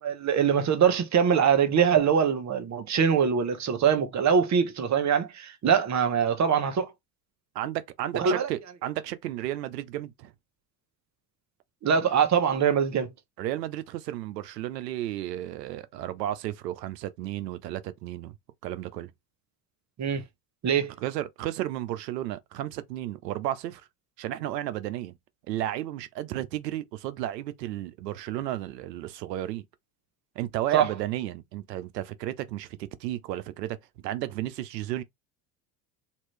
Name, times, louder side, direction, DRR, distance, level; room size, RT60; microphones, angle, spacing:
voice 1, 0.0-6.9 8.2-8.5 11.8-13.1 20.0-20.2 20.6-20.9 30.7-30.9, right 7 dB, 35° right, 1.0 m, -23 dB
voice 2, 7.5-10.3 13.4-18.3 18.6-19.1 21.0-23.8 24.2-25.1 25.5-29.6 30.4-33.8 34.0-35.0, right 13 dB, 90° right, 0.6 m, -33 dB
2.9 x 2.6 x 3.2 m
hypercardioid pair, 75°, 48 cm